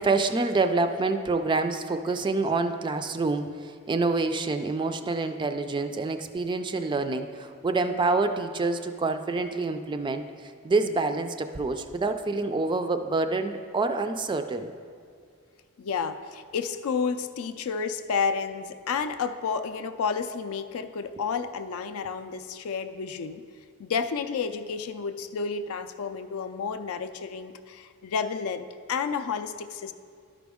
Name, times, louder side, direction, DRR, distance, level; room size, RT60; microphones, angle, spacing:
voice 1, 0.0-14.7, right 3 dB, 20° right, 8 dB, 0.3 m, -27 dB
voice 2, 15.8-23.4 23.8-29.9, left 5 dB, 70° left, 10 dB, 0.4 m, -31 dB
12.0 x 5.1 x 3.5 m, 2.1 s
head